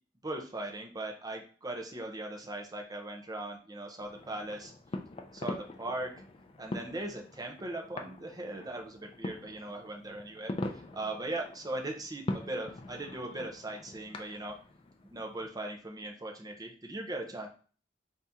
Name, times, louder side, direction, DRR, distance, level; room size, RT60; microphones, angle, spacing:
voice 1, 0.2-4.7 5.3-6.1 6.6-10.5 10.9-14.5 15.1-17.5, right 2 dB, 20° right, 2 dB, 0.8 m, -39 dB
sound 1, 4.0-15.5, left 2 dB, 30° left, 0.4 m, -43 dB
4.1 x 2.7 x 3.5 m, 0.40 s
head